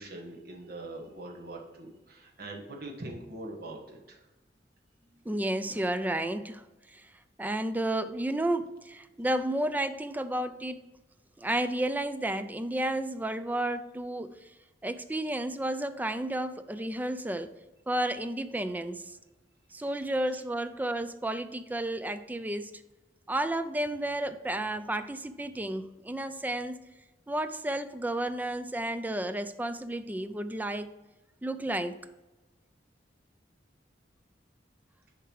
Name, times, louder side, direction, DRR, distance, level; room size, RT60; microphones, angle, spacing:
voice 1, 0.0-4.2, right 2 dB, 55° right, 0 dB, 1.4 m, -42 dB
voice 2, 5.3-6.6 6.9-7.1 7.4-10.8 11.4-14.5 14.8-17.5 17.9-19.2 19.7-22.8 23.3-26.8 27.3-30.9 31.4-31.9, right 1 dB, 10° right, 11 dB, 0.3 m, -32 dB
6.9 x 4.7 x 4.7 m, 1.1 s
head